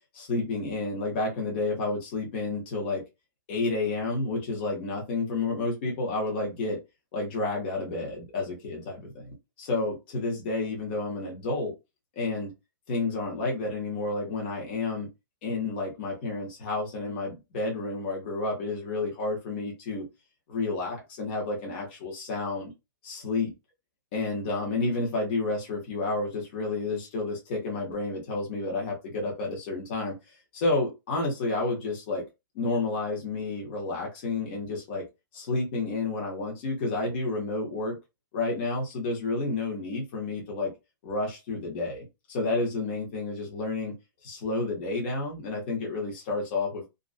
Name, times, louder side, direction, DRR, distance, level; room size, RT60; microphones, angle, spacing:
voice 1, 0.1-3.0 3.5-6.8 7.1-11.7 12.1-12.5 12.9-15.1 15.4-20.1 20.5-22.7 23.0-23.5 24.1-30.2 30.5-32.2 32.5-35.0 35.3-38.0 38.3-40.7 41.0-44.0 44.2-46.8, left 3 dB, 30° left, 0.8 m, -30 dB
2.4 x 2.1 x 2.4 m
hypercardioid pair, 180°, 12 cm